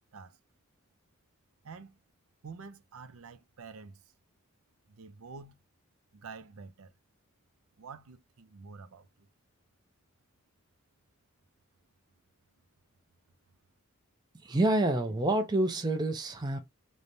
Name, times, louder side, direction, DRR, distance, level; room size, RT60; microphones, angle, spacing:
voice 1, 1.6-2.0 2.4-4.1 4.9-5.6 6.1-6.9 7.8-9.1, right 4 dB, 80° right, 0.5 m, -48 dB
voice 2, 14.4-16.6, right 2 dB, 20° right, 0.4 m, -27 dB
3.1 x 2.2 x 2.6 m
head